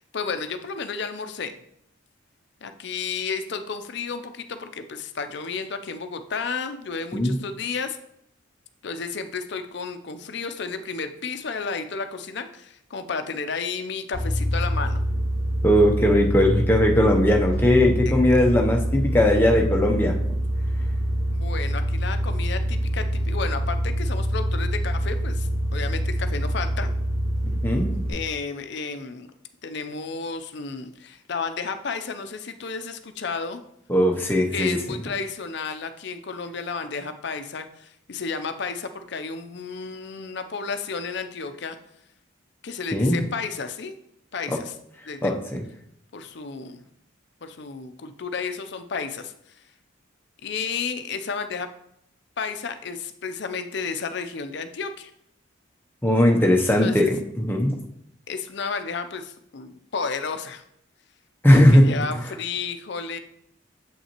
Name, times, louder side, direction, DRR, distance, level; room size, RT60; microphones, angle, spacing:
voice 1, 0.0-1.6 2.6-8.0 8.8-15.0 21.3-26.9 28.1-29.3 29.6-33.6 34.5-41.8 42.6-43.9 44.3-44.7 45.1-45.3 46.1-46.8 47.4-49.3 50.4-51.7 52.4-55.1 56.8-57.1 58.3-60.6 61.5-63.2, left 5 dB, 55° left, 8 dB, 0.5 m, -32 dB
sound 1, 14.1-28.1, equal, 70° right, 2.3 m, -25 dB
voice 2, 15.6-20.2 27.4-28.1 33.9-34.8 42.9-43.2 45.2-45.6 56.0-57.8 61.4-61.8, left 1 dB, 10° left, 1 dB, 0.6 m, -19 dB
7.3 x 5.6 x 2.9 m, 0.75 s
head